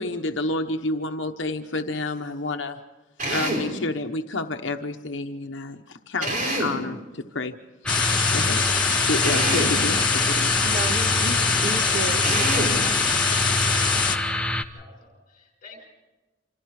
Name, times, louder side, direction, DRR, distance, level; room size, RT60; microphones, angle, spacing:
voice 1, 0.0-2.8 3.2-5.8 6.1-7.5 7.8-7.9 8.3-8.7 9.1-10.6, left 2 dB, 75° left, 5 dB, 1.0 m, -29 dB
Drill, 3.2-3.7 6.2-6.8 9.2-9.8 12.2-12.8, right 1 dB, 45° right, 5.0 m, -26 dB
sound 1, 7.8-14.6, left 1 dB, 5° left, 1.0 m, -26 dB
sound 2, 7.9-14.2, left 6 dB, 25° left, 1.6 m, -24 dB
voice 2, 10.6-12.8, right 2 dB, 60° right, 4 dB, 2.3 m, -33 dB
voice 3, 13.4-13.8 14.1-14.4 14.7-15.9, left 3 dB, 45° left, 3 dB, 6.7 m, -49 dB
27.5 x 26.5 x 4.8 m, 1.1 s
head